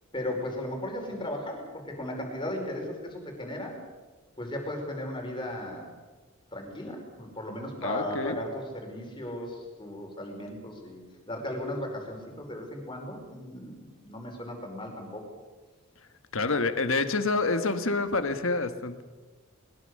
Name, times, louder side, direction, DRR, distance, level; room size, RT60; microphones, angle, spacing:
voice 1, 0.1-3.8 4.4-5.9 6.5-11.0 11.3-15.3, left 1 dB, 20° left, 2 dB, 5.1 m, -36 dB
voice 2, 7.8-8.4 16.3-19.0, left 3 dB, 65° left, 9 dB, 1.6 m, -27 dB
21.5 x 21.0 x 6.7 m, 1.3 s
head